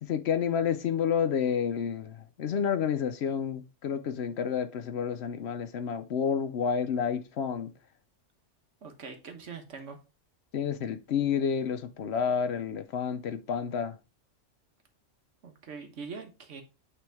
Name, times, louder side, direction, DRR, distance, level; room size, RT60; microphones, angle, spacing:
voice 1, 0.0-7.7 10.5-14.0, left 7 dB, 65° left, 0.8 m, -30 dB
voice 2, 8.8-10.0 15.4-16.6, right 5 dB, 75° right, 1.5 m, -43 dB
9.0 x 3.5 x 3.4 m
omnidirectional pair, 1.3 m